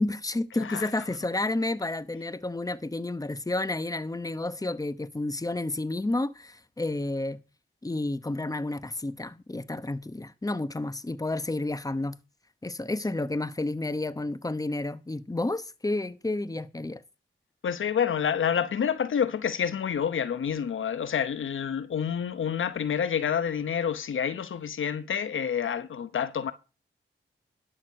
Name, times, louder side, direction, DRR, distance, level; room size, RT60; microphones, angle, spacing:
voice 1, 0.0-7.4 7.8-12.2 12.6-17.0, left 2 dB, 15° left, 1.0 m, -31 dB
voice 2, 0.6-0.9 17.6-26.5, left 8 dB, 75° left, 0.9 m, -28 dB
12.0 x 6.4 x 6.4 m
cardioid pair, 40°, 21 cm